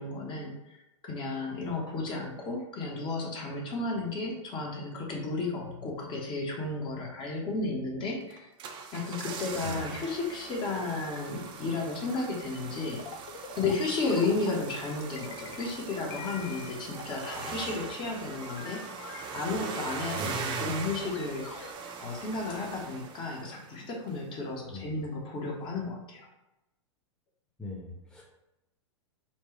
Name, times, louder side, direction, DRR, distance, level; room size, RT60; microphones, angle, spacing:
voice 1, 0.0-8.5 8.9-13.0 13.6-18.8 19.3-21.5 22.0-26.3, left 3 dB, 30° left, -1 dB, 1.1 m, -33 dB
sound 1, 8.3-23.8 24.1-24.2, right 5 dB, 30° right, 0.6 m, -41 dB
sound 2, 12.7-14.9 15.2-15.8 16.1-18.0 18.3-21.7, left 5 dB, 60° left, 0.6 m, -46 dB
voice 2, 27.6-28.2, left 3 dB, 5° left, -3 dB, 1.0 m, -41 dB
4.5 x 2.3 x 4.4 m, 0.93 s
hypercardioid pair, 110°, 16 cm